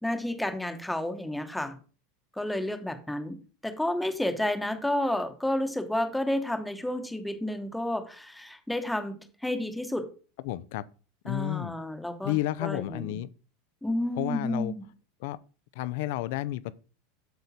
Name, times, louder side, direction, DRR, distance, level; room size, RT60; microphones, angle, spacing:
voice 1, 0.0-1.8 2.4-10.1 11.3-12.4 12.6-13.2 13.8-14.9, left 1 dB, 5° left, 1.1 m, -31 dB
voice 2, 10.4-10.8 11.2-11.7 12.2-13.3 14.2-14.7 15.2-15.4 15.8-16.7, left 15 dB, 65° left, 0.6 m, -31 dB
8.1 x 6.7 x 4.3 m
supercardioid pair, 155°, 0 cm